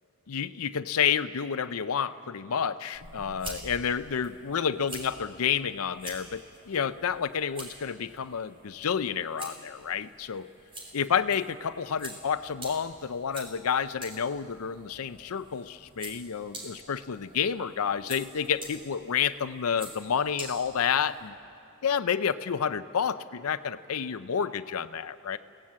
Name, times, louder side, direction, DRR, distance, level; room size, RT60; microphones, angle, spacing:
voice 1, 0.3-10.5 10.9-21.3 21.8-25.4, left 7 dB, 90° left, 12 dB, 0.5 m, -30 dB
sound 1, 2.9-21.3, right 1 dB, 25° right, 3.9 m, -47 dB
28.5 x 17.5 x 7.5 m, 2.9 s
head